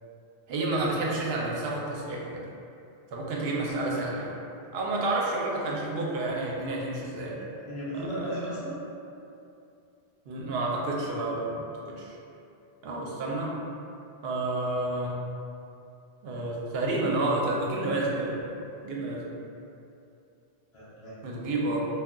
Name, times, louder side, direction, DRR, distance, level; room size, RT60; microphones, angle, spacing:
voice 1, 0.5-2.4 3.1-4.3 4.7-7.4 7.9-8.4 10.3-11.5 11.9-12.1 12.8-13.5 14.2-15.2 16.2-18.4 18.8-19.2 21.2-21.8, right 2 dB, 75° right, -3 dB, 0.8 m, -30 dB
voice 2, 7.4-8.8 20.7-21.2, equal, 40° left, -12 dB, 0.5 m, -36 dB
2.2 x 2.2 x 3.6 m, 2.7 s
omnidirectional pair, 1.1 m